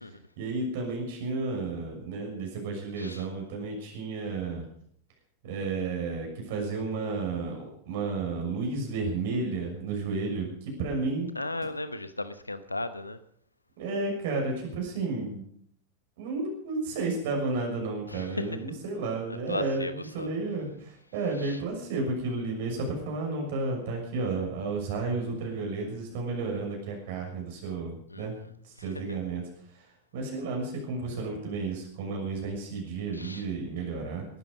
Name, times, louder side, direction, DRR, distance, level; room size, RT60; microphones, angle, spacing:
voice 1, 0.4-4.6 5.4-11.3 13.8-15.4 16.2-28.4 28.6-29.4 30.1-34.3, right 3 dB, 50° right, 6.4 m, -32 dB
voice 2, 11.3-13.2 18.1-18.6 19.3-20.3 21.4-21.6 28.1-28.5 28.8-29.2 33.1-33.4, left 2 dB, 85° left, 1.1 m, -36 dB
18.5 x 12.5 x 5.4 m
figure-of-eight pair, 90°, 0 cm